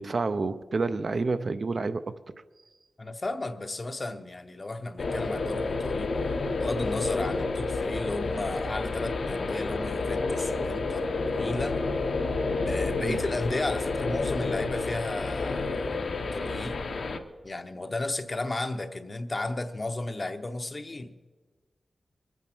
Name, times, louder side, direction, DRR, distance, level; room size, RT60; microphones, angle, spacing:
voice 1, 0.0-2.2 13.0-13.2, right 3 dB, 50° right, 0.6 m, -29 dB
voice 2, 3.0-6.1 6.6-11.9 12.7-16.8 17.4-21.3, left 2 dB, 30° left, 0.8 m, -34 dB
sound 1, 5.0-17.2, left 3 dB, 60° left, 1.0 m, -30 dB
23.5 x 9.0 x 6.1 m
wide cardioid pair, 155°, 0 cm